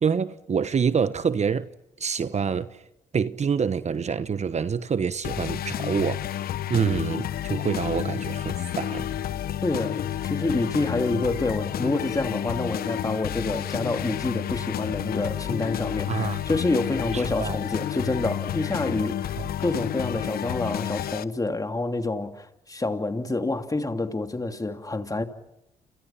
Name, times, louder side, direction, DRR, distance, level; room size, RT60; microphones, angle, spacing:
voice 1, 0.0-1.7 2.0-2.8 3.1-6.2 6.7-9.1 16.1-16.5 17.1-17.6 19.4-19.5, right 6 dB, 45° right, 1.2 m, -26 dB
sound 1, 5.2-21.2, left 11 dB, 70° left, 1.0 m, -30 dB
voice 2, 9.6-25.2, left 2 dB, 20° left, 2.9 m, -28 dB
29.0 x 28.5 x 5.8 m
supercardioid pair, 60°, 16 cm